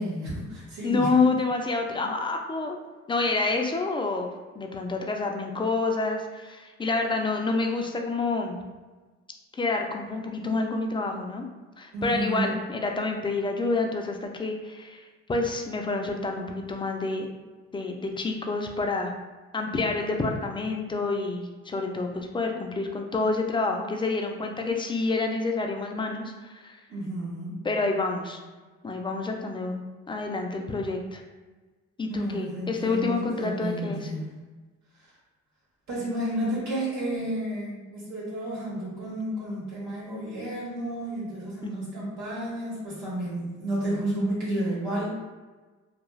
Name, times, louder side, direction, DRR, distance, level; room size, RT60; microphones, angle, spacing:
voice 1, 0.0-1.3 1.9-2.0 11.9-12.5 26.9-27.5 32.1-34.4 35.9-45.1, right 1 dB, 75° right, -6 dB, 1.2 m, -31 dB
voice 2, 0.8-2.8 3.1-8.6 9.5-11.5 11.8-17.3 17.7-19.1 19.5-26.8 27.6-28.4 28.8-29.8 30.1-31.2 32.0-34.1 41.6-41.9, left 3 dB, 15° left, 2 dB, 0.3 m, -28 dB
2.3 x 2.3 x 3.1 m, 1.3 s
cardioid pair, 90°, 30 cm